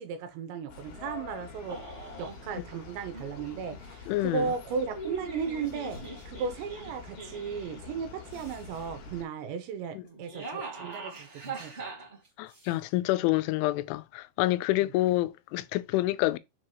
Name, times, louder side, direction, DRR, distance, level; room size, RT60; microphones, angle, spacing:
voice 1, 0.0-1.8 2.2-11.9, right 6 dB, 80° right, 3.1 m, -36 dB
sound 1, 0.7-9.3, left 5 dB, 60° left, 3.0 m, -46 dB
sound 2, 1.7-2.4 3.1-3.8 4.6-7.8 8.3-8.9 10.0-12.7, right 3 dB, 45° right, 0.7 m, -42 dB
voice 2, 4.1-4.5 9.9-10.0 12.4-16.4, left 17 dB, 90° left, 3.0 m, -27 dB
6.9 x 4.7 x 3.0 m
omnidirectional pair, 5.4 m